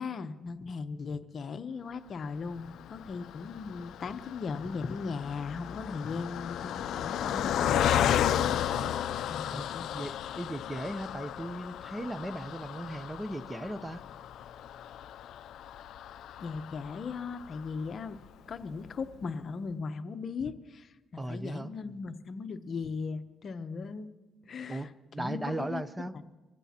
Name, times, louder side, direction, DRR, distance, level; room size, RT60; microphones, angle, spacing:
voice 1, 0.0-8.0 9.3-9.9 16.4-18.2 18.5-24.1 24.4-25.8, left 4 dB, 50° left, 10 dB, 0.8 m, -38 dB
Car passing by, 2.5-18.0 18.5-18.6 18.9-19.1, left 10 dB, 75° left, 0.4 m, -34 dB
voice 2, 9.5-14.0 21.2-21.7 24.7-26.1, right 1 dB, 10° right, 13 dB, 0.6 m, -37 dB
25.0 x 15.5 x 2.9 m, 1.2 s
cardioid pair, 90°, 0 cm